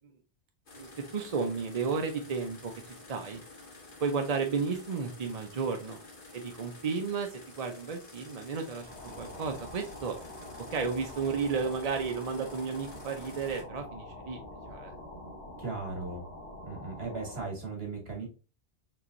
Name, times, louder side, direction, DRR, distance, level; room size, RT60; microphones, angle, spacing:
sound 1, 0.7-13.6, left 2 dB, 50° left, 1.2 m, -51 dB
voice 1, 0.8-2.7 3.1-3.4 4.0-6.0 6.3-8.9 9.2-10.2 10.7-14.4 14.7-15.0, right 5 dB, 45° right, 3 dB, 0.6 m, -33 dB
sound 2, 8.7-17.6, left 1 dB, 20° right, 1.8 m, -46 dB
voice 2, 15.6-16.2 16.6-18.3, right 3 dB, 60° right, 1 dB, 1.8 m, -37 dB
4.6 x 2.9 x 2.5 m, 0.33 s
omnidirectional pair, 1.1 m